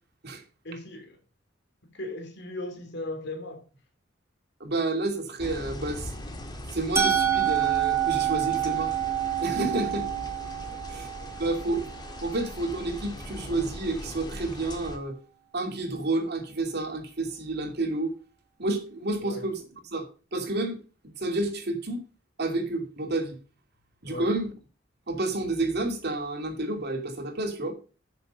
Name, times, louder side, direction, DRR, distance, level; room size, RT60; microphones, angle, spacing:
voice 1, 0.6-1.2 1.9-3.6 9.6-10.0 10.6-11.3 19.2-19.5 24.1-24.3, left 2 dB, 60° left, 2.8 m, -38 dB
voice 2, 4.6-6.1 6.7-8.9 9.4-10.0 10.9-11.1 11.4-11.9 12.2-15.2 15.5-18.2 18.6-19.6 19.9-20.1 20.3-20.8 21.2-22.0 22.4-23.3 24.0-24.5 25.1-27.7, right 2 dB, 60° right, 2.7 m, -30 dB
sound 1, 5.4-15.0, left 1 dB, 25° left, 1.8 m, -40 dB
Musical instrument, 7.0-12.9, right 10 dB, 15° right, 1.9 m, -28 dB
11.0 x 6.8 x 5.5 m
head